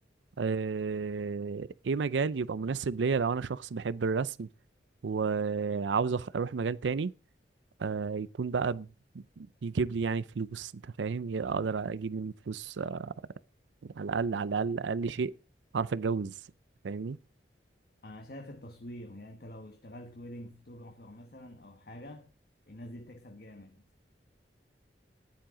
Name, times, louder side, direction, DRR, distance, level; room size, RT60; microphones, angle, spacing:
voice 1, 0.4-4.5 5.0-7.1 7.8-8.9 9.4-13.1 13.8-15.3 15.7-16.3 16.8-17.2, right 5 dB, 90° right, 0.5 m, -31 dB
voice 2, 18.0-22.3 22.7-23.8, left 1 dB, 55° left, 1.3 m, -46 dB
13.5 x 10.5 x 3.7 m
head